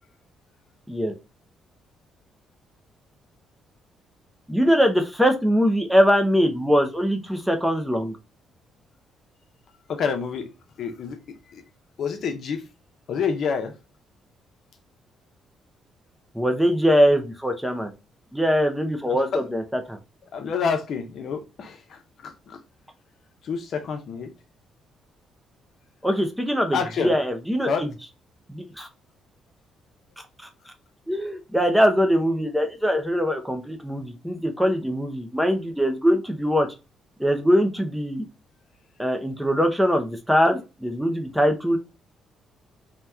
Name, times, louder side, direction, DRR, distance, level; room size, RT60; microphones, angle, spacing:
voice 1, 4.5-8.1 16.3-17.9 18.3-20.0 26.0-27.9 28.5-28.9 30.4-30.5 31.1-36.7 37.2-38.2 39.0-41.8, equal, ahead, 0.5 m, -22 dB
voice 2, 9.9-10.5 10.8-11.2 11.5-11.6 12.0-12.6 13.1-13.7 19.1-19.4 20.3-22.6 23.4-24.3 26.7-27.1 27.6-27.9, left 6 dB, 55° left, 0.7 m, -28 dB
2.8 x 2.2 x 3.4 m
cardioid pair, 125°, 0 cm